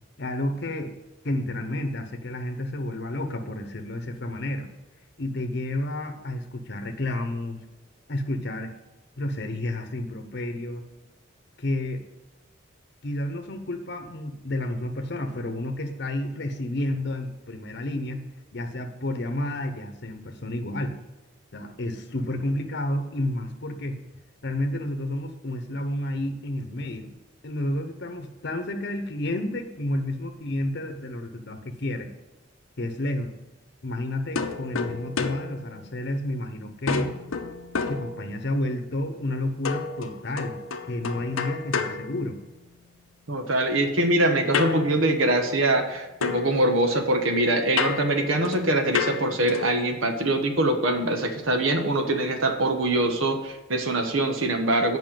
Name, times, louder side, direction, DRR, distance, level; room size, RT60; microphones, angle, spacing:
voice 1, 0.2-0.9 1.2-4.7 5.2-7.6 8.1-8.7 9.2-10.8 11.6-12.0 13.0-18.2 18.5-20.9 21.5-24.0 24.4-27.1 27.4-32.1 32.8-33.3 33.8-37.1 37.9-42.4, left 1 dB, 55° left, 6 dB, 0.9 m, -30 dB
sound 1, 34.4-36.4 36.9-38.7 39.6-42.9 44.5-45.9 46.2-49.9, left 5 dB, 90° left, 0.7 m, -32 dB
voice 2, 43.3-55.0, right 1 dB, 80° right, 5 dB, 1.3 m, -23 dB
7.6 x 5.7 x 7.5 m, 1.0 s
head